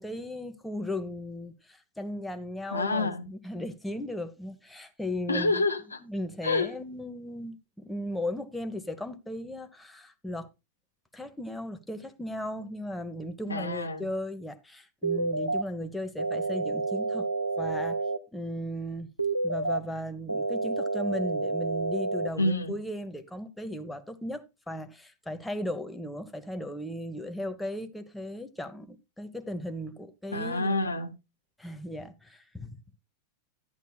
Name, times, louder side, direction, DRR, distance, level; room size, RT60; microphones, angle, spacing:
voice 1, 0.0-5.6 6.0-10.5 11.1-17.3 17.6-18.0 18.3-19.1 19.4-30.8 31.6-32.8, left 1 dB, 5° left, 1.1 m, -36 dB
voice 2, 2.7-3.2 5.3-6.0 6.4-6.7 13.5-14.0 22.4-22.8 30.3-31.1, left 2 dB, 80° left, 1.1 m, -28 dB
sound 1, 15.0-15.6 16.2-18.2 19.2-19.8 20.3-22.3, right 3 dB, 85° right, 0.8 m, -29 dB
11.5 x 10.5 x 2.3 m
figure-of-eight pair, 90°, 0 cm